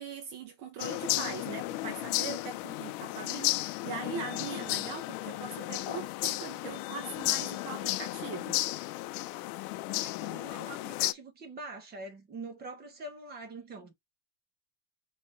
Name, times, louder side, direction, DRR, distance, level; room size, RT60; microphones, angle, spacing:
voice 1, 0.0-8.6, right 6 dB, 45° right, 1.0 m, -41 dB
sound 1, 0.8-11.1, left 19 dB, 65° left, 0.6 m, -34 dB
voice 2, 9.9-13.9, right 2 dB, 20° right, 1.3 m, -44 dB
5.3 x 3.0 x 3.0 m
supercardioid pair, 170°, 47 cm